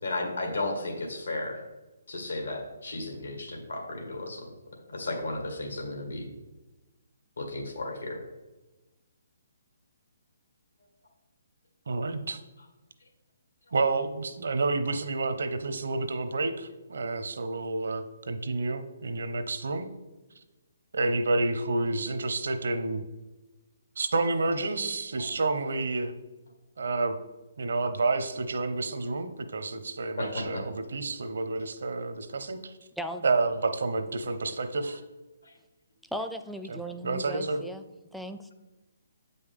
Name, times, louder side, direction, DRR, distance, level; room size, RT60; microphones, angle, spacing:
voice 1, 0.0-1.6 2.1-4.4 4.9-6.3 7.4-8.2 30.2-30.6 35.4-35.5, left 2 dB, 90° left, 0 dB, 1.8 m, -34 dB
voice 2, 11.9-12.4 13.7-19.9 20.9-23.0 24.0-26.1 26.8-27.2 27.6-32.7 33.2-35.0 36.7-37.6, right 3 dB, 70° right, 9 dB, 0.7 m, -29 dB
voice 3, 36.1-37.8 38.1-38.5, equal, ahead, 7 dB, 0.4 m, -37 dB
8.0 x 5.5 x 3.5 m, 1.1 s
figure-of-eight pair, 140°, 0 cm